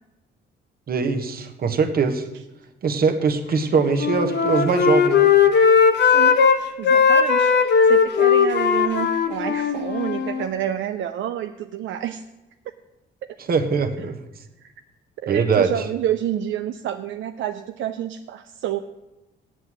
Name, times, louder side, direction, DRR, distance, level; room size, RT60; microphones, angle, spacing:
voice 1, 0.9-2.3 2.8-5.3 13.5-14.2 15.3-15.7, right 5 dB, 50° right, 8 dB, 1.2 m, -21 dB
Wind instrument woodwind instrument, 3.8-6.6 6.8-10.5, left 6 dB, 60° left, 1.0 m, -18 dB
voice 2, 6.8-12.2 14.6-14.7 15.2-18.8, right 11 dB, 75° right, 8 dB, 0.5 m, -28 dB
8.1 x 7.8 x 7.5 m, 0.99 s
cardioid pair, 90°, 20 cm